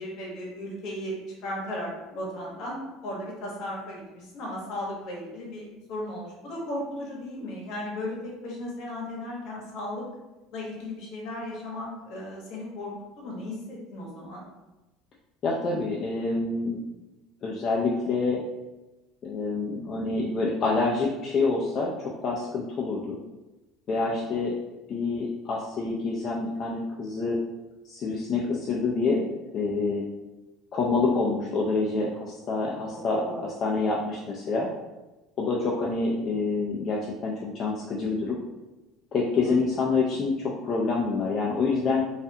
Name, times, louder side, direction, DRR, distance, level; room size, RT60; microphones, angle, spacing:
voice 1, 0.0-10.1 10.5-14.4 23.9-24.2 32.6-32.8 33.2-33.4 33.8-33.9 39.4-39.5, left 1 dB, 60° left, -3 dB, 0.9 m, -36 dB
voice 2, 15.4-16.8 17.4-18.4 19.2-23.2 23.9-24.6 24.9-27.4 27.8-29.3 29.5-30.1 30.7-34.7 35.4-38.4 39.1-42.0, left 3 dB, 40° left, -3 dB, 0.3 m, -27 dB
2.4 x 2.2 x 2.6 m, 1.1 s
supercardioid pair, 125°, 0 cm